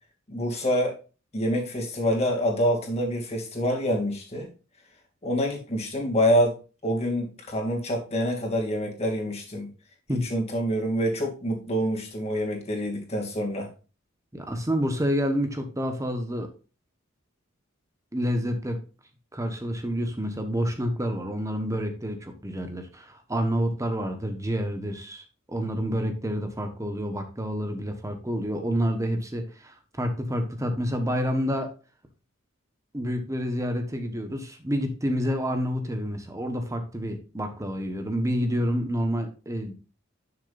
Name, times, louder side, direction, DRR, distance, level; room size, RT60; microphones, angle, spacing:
voice 1, 0.3-1.0 1.3-4.5 5.2-9.7 10.1-13.7, equal, 30° left, 0 dB, 2.6 m, -26 dB
voice 2, 14.3-16.5 18.1-18.8 19.3-31.7 32.9-39.7, equal, 15° right, 6 dB, 1.2 m, -28 dB
11.0 x 6.7 x 2.6 m, 0.33 s
head